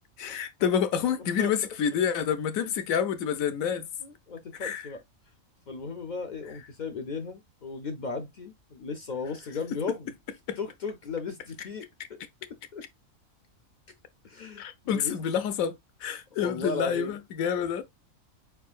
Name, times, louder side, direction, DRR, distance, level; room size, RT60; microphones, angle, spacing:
voice 1, 0.2-3.9 4.6-4.9 10.5-10.6 14.6-17.8, left 8 dB, 85° left, 1.0 m, -28 dB
voice 2, 1.2-1.5 2.6-2.7 4.0-5.0 5.7-10.1 10.6-12.2 12.7-12.8 14.2-15.1 16.4-17.2 17.6-17.7, left 4 dB, 65° left, 0.4 m, -36 dB
4.7 x 4.3 x 2.3 m
omnidirectional pair, 1.4 m